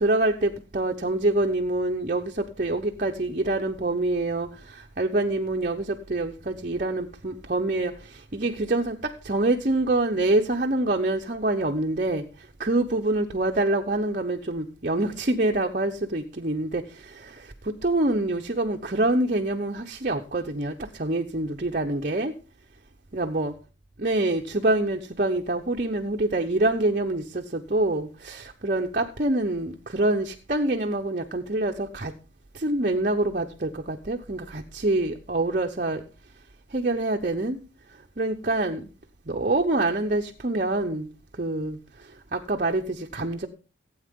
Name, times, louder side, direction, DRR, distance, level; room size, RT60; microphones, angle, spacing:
voice 1, 0.0-22.4 23.1-23.5 24.0-32.1 32.5-36.0 36.7-37.6 38.2-38.9 39.3-41.1 41.4-43.5, right 2 dB, 40° right, 2 dB, 0.9 m, -26 dB
16.5 x 8.8 x 3.7 m, 0.33 s
head